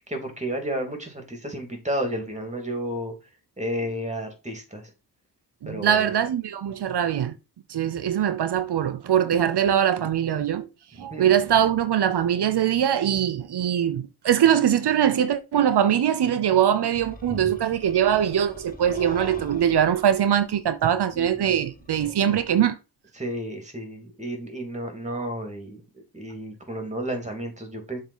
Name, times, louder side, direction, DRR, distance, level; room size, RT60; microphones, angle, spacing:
voice 1, 0.0-3.1 3.6-4.9 5.7-6.2 11.0-11.3 21.1-21.6 23.1-25.8 26.1-28.0, equal, 15° right, 2.7 m, -32 dB
voice 2, 5.6-7.4 7.7-10.7 11.0-22.8, right 9 dB, 85° right, 0.7 m, -22 dB
sound 1, 16.9-22.4, left 2 dB, 20° left, 1.4 m, -42 dB
7.3 x 3.8 x 5.5 m
wide cardioid pair, 110°, 39 cm